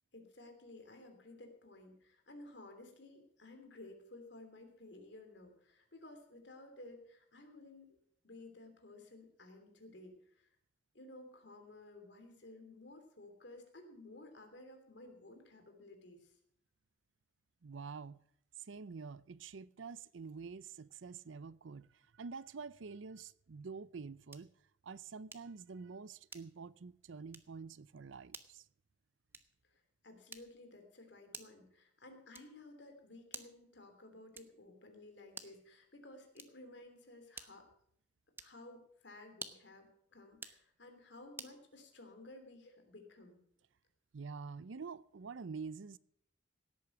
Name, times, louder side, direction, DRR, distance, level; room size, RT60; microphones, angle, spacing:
voice 1, 0.1-8.0 8.2-10.5 10.9-16.4 29.6-37.7 38.4-43.4, left 2 dB, 65° left, 3.0 m, -55 dB
voice 2, 17.6-18.2 18.6-24.5 24.8-28.7 44.1-46.0, right 5 dB, 85° right, 0.6 m, -47 dB
sound 1, 24.3-24.6 25.3-25.6 26.3-26.7 27.3-27.6 28.3-28.6 29.3-29.6 30.3-30.7 31.3-31.7 32.3-32.7 33.3-33.7 34.3-34.7 35.3-35.7 36.3-36.7 37.3-37.7 38.3-38.6 39.3-39.8 40.3-40.6 41.4-41.6, right 3 dB, 10° right, 0.9 m, -51 dB
17.0 x 8.4 x 6.0 m
head